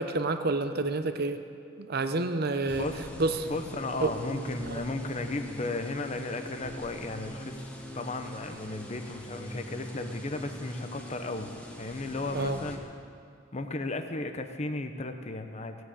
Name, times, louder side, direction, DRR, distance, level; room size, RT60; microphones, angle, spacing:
voice 1, 0.0-1.4 1.8-2.8 3.2-3.5 4.0-4.1 4.7-4.8 12.3-12.6, right 3 dB, 50° right, 9 dB, 0.8 m, -28 dB
sound 1, 2.7-12.8, equal, 5° left, 1.4 m, -42 dB
voice 2, 3.4-12.9 13.5-15.8, left 2 dB, 35° left, 7 dB, 0.8 m, -35 dB
17.5 x 7.9 x 8.5 m, 2.4 s
head